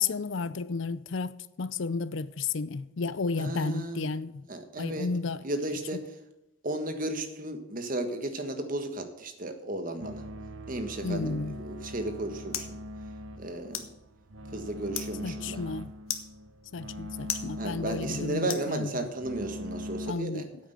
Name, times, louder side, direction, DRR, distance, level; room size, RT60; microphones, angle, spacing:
voice 1, 0.0-4.4 4.8-5.4 11.0-11.6 15.2-15.9 16.7-18.9 20.1-20.4, left 4 dB, 65° left, 0.5 m, -32 dB
voice 2, 3.4-4.1 4.5-5.1 5.4-6.2 6.6-10.3 10.7-12.8 13.4-13.9 14.5-15.6 17.6-20.5, right 1 dB, 40° right, 1.4 m, -34 dB
sound 1, 10.0-20.1, equal, 70° right, 0.9 m, -41 dB
sound 2, 11.7-19.3, left 9 dB, 85° left, 1.3 m, -42 dB
9.6 x 8.4 x 6.8 m
head